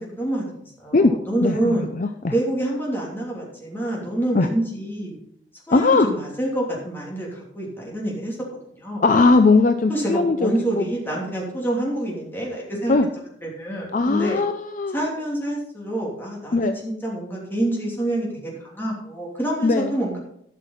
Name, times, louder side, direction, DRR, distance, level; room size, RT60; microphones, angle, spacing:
voice 1, 0.0-1.9 2.3-5.2 5.7-8.4 8.8-9.0 9.9-12.9 13.4-14.4 14.9-20.2, right 1 dB, 10° left, -3 dB, 3.0 m, -27 dB
voice 2, 1.4-2.3 4.3-4.5 5.7-6.1 9.0-10.8 12.9-13.1 13.9-15.0 16.5-16.8 19.6-19.9, left 3 dB, 45° left, 7 dB, 0.5 m, -19 dB
12.5 x 5.9 x 5.8 m, 0.74 s
head